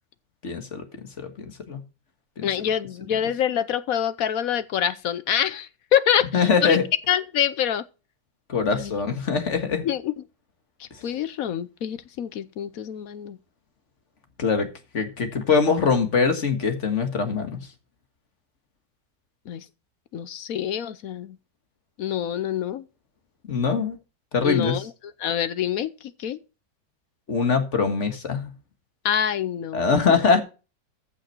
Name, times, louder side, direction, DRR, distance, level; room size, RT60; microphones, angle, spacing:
voice 1, 0.4-0.8 1.2-1.8 2.4-2.5 6.3-6.8 8.5-9.9 14.4-14.7 14.9-17.7 23.5-24.0 24.3-24.8 27.3-28.5 29.7-30.4, left 5 dB, 45° left, 1.9 m, -23 dB
voice 2, 2.4-6.8 7.1-7.8 8.7-8.9 9.8-10.1 10.8-13.4 19.5-19.7 20.1-21.4 22.0-22.8 24.4-24.9 25.2-25.9 26.2-26.4 29.0-29.9, left 9 dB, 65° left, 1.0 m, -26 dB
14.5 x 6.2 x 4.5 m
omnidirectional pair, 1.9 m